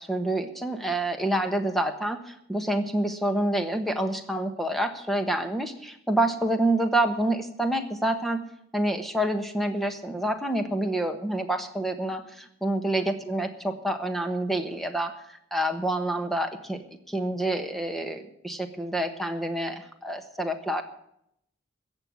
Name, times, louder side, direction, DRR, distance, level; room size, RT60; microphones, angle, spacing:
voice 1, 0.0-8.4 8.7-16.8 17.1-20.8, right 1 dB, ahead, 7 dB, 1.2 m, -27 dB
14.5 x 7.9 x 8.6 m, 0.75 s
head